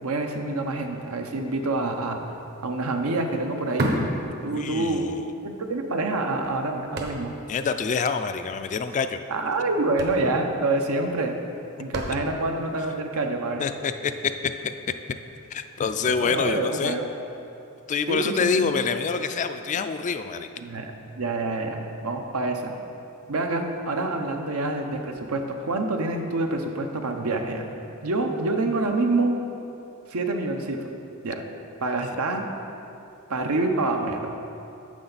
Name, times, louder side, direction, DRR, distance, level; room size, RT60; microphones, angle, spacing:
voice 1, 0.0-2.2 2.6-4.1 4.4-5.1 5.4-7.3 9.3-11.3 11.8-13.6 16.2-17.1 18.1-18.7 20.6-22.7 23.3-27.7 28.0-29.3 30.1-30.8 31.2-31.4 31.8-32.4 33.3-34.4, right 2 dB, 85° right, 4 dB, 0.8 m, -27 dB
sound 1, 2.0-2.1 2.4-5.0 5.4-5.5 6.1-7.6 7.9-8.0 8.2-8.5 9.3-9.5 9.8-12.6 13.2-13.3, right 1 dB, 50° right, 0.9 m, -32 dB
voice 2, 4.4-5.3 7.5-9.2 13.6-14.1 14.4-14.5 15.5-17.0 17.9-20.5, left 5 dB, 35° left, 9 dB, 0.3 m, -26 dB
9.7 x 6.8 x 4.0 m, 2.8 s
head